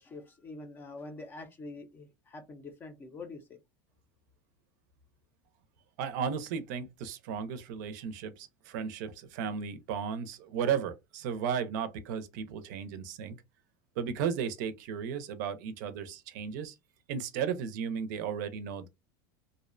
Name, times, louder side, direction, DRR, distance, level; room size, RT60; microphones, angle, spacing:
voice 1, 0.0-3.6, left 3 dB, 20° left, 0.4 m, -45 dB
voice 2, 6.0-13.4 14.0-16.7 17.1-18.9, right 7 dB, 70° right, 0.5 m, -34 dB
2.5 x 2.1 x 2.4 m
supercardioid pair, 165°, 10 cm